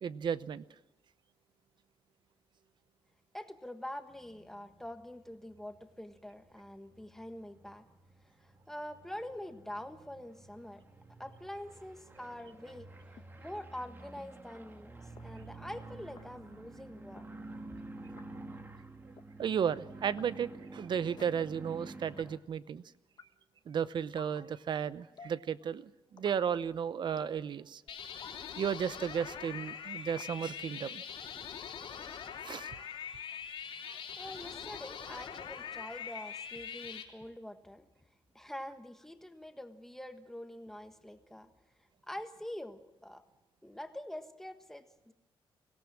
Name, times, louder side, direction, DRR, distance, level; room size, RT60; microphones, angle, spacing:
voice 1, 0.0-0.6 19.4-22.8 23.7-27.8 28.6-31.0 32.4-32.7 33.9-34.0, right 7 dB, 55° right, 16 dB, 0.8 m, -34 dB
voice 2, 3.3-7.8 8.4-10.8 11.2-12.9 13.4-17.3 34.2-37.9 38.3-41.5 42.1-43.2 43.6-45.1, left 1 dB, 5° left, 7 dB, 1.5 m, -45 dB
sound 1, 4.1-22.4, right 2 dB, 20° right, 1.5 m, -51 dB
sound 2, 13.2-13.3 14.2-14.3 15.2-15.3 16.2-16.3 17.2-17.3 18.2-18.3 19.2-19.3 20.2-20.3 21.2-21.3 22.2-22.3 23.2-23.3 24.2-24.4 25.2-25.4 26.2-26.4 27.2-27.4 28.2-28.4 29.2-29.3 30.2-30.3, left 6 dB, 50° left, 1.2 m, -52 dB
sound 3, 27.9-37.0, left 7 dB, 75° left, 3.4 m, -43 dB
23.5 x 17.5 x 7.5 m, 0.97 s
cardioid pair, 125°, 10 cm